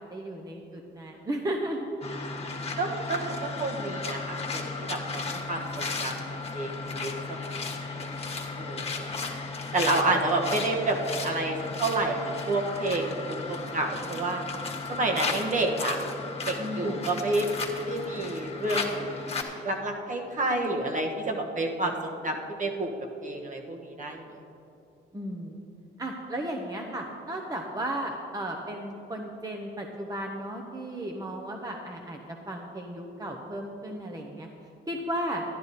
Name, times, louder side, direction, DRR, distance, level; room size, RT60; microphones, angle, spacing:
voice 1, 0.1-1.9 10.1-10.2 16.6-17.0 25.1-25.7 26.0-32.2 32.5-34.5 34.9-35.4, right 1 dB, 20° right, 1 dB, 0.9 m, -34 dB
sound 1, 2.0-19.4, left 4 dB, 30° left, 1.5 m, -35 dB
voice 2, 2.8-6.2 6.5-8.1 8.6-9.1 9.7-14.4 14.9-16.0 16.5-17.4 17.8-19.0 19.6-22.9 23.2-24.4, right 2 dB, 40° right, 2 dB, 1.4 m, -29 dB
12.0 x 10.0 x 4.2 m, 2.7 s
cardioid pair, 90°, 20 cm